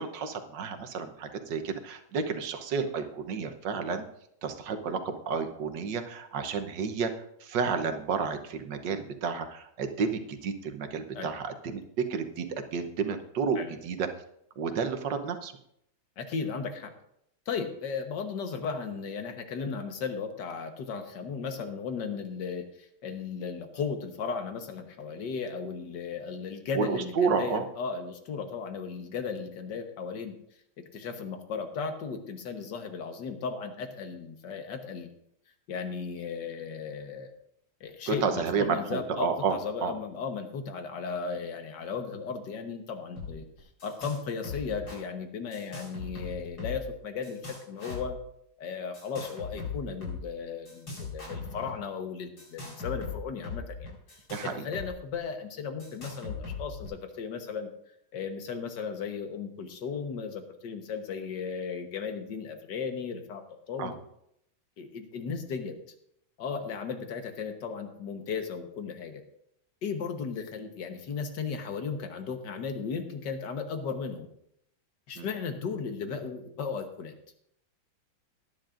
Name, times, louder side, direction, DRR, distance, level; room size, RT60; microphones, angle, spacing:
voice 1, 0.0-4.0 4.4-14.1 14.6-15.5 26.7-27.6 38.1-39.9 54.3-54.7 63.8-63.9 75.2-75.3, right 5 dB, 65° right, 7 dB, 1.5 m, -31 dB
voice 2, 16.2-16.9 17.5-30.3 30.8-35.1 35.7-37.3 37.8-43.4 43.8-48.2 48.6-57.7 58.1-63.9 64.8-65.8 66.4-69.2 69.8-74.3 75.1-77.1, left 5 dB, 60° left, 6 dB, 1.8 m, -36 dB
sound 1, 43.2-43.3 43.6-44.2 44.4-45.0 45.5-46.9 47.2-48.1 48.9-50.2 50.7-51.7 52.4-54.9 55.1-55.2 55.8-56.9, left 4 dB, 80° left, 5.2 m, -39 dB
19.0 x 10.5 x 2.6 m, 0.74 s
omnidirectional pair, 2.2 m